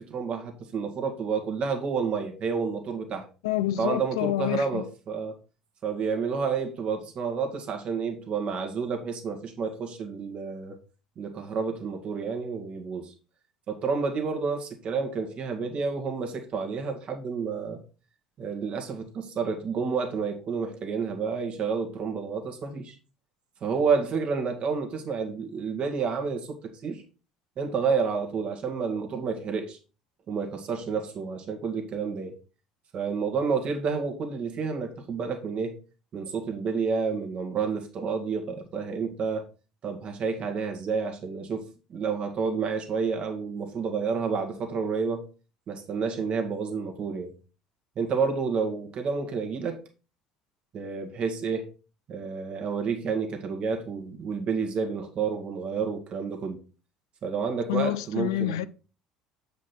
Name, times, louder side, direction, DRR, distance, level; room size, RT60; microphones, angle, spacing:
voice 1, 0.0-3.3 3.8-5.4 5.8-10.8 11.2-13.1 13.7-17.8 18.4-23.0 23.6-26.6 26.8-27.0 27.6-29.8 30.3-32.3 32.9-35.8 36.1-39.4 39.8-45.2 45.7-47.3 48.0-49.8 50.7-51.7 52.1-56.6 57.2-58.6, right 5 dB, 45° right, 1.9 m, -30 dB
voice 2, 3.4-4.8 57.7-58.7, left 13 dB, 70° left, 0.4 m, -28 dB
7.8 x 5.2 x 4.4 m
figure-of-eight pair, 60°, 3 cm